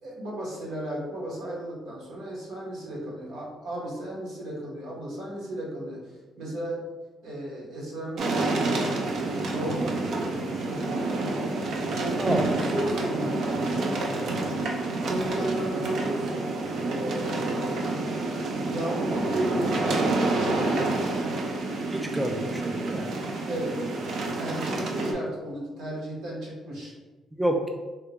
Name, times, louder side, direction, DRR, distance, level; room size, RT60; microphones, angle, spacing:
voice 1, 0.0-6.8 7.2-8.9 9.2-10.4 10.8-11.5 11.8-14.6 15.0-16.5 16.8-17.7 18.5-20.0 20.3-21.3 23.5-23.9 24.4-26.9, right 1 dB, 85° right, -5 dB, 1.1 m, -34 dB
sound 1, 8.2-25.1, right 2 dB, 70° right, 0.5 m, -28 dB
voice 2, 21.9-23.1 27.3-27.7, right 1 dB, 10° right, 3 dB, 0.3 m, -28 dB
3.6 x 2.2 x 2.9 m, 1.2 s
cardioid pair, 90°, 0 cm